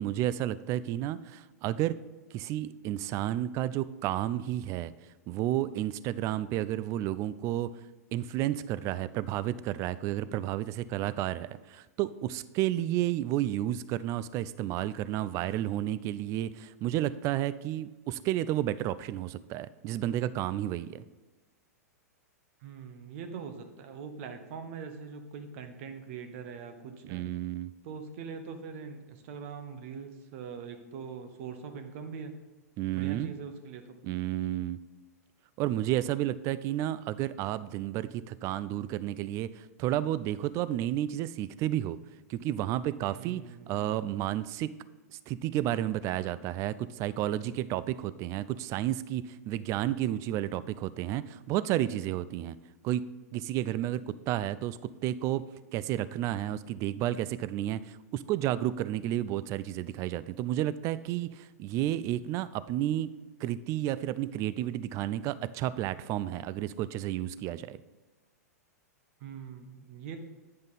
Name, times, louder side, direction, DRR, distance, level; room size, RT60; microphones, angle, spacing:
voice 1, 0.0-2.0 2.3-4.9 5.3-7.7 8.1-21.0 27.0-27.7 32.8-33.3 34.0-34.8 35.6-42.0 42.3-44.7 45.3-52.6 52.8-53.0 53.3-55.4 55.7-63.1 63.4-67.8, right 13 dB, 35° right, 16 dB, 0.3 m, -31 dB
voice 2, 22.6-27.3 27.8-32.3 32.9-34.0 43.1-44.0 69.2-70.2, right 6 dB, 50° right, 8 dB, 1.0 m, -42 dB
8.9 x 5.3 x 4.0 m, 1.2 s
hypercardioid pair, 110°, 9 cm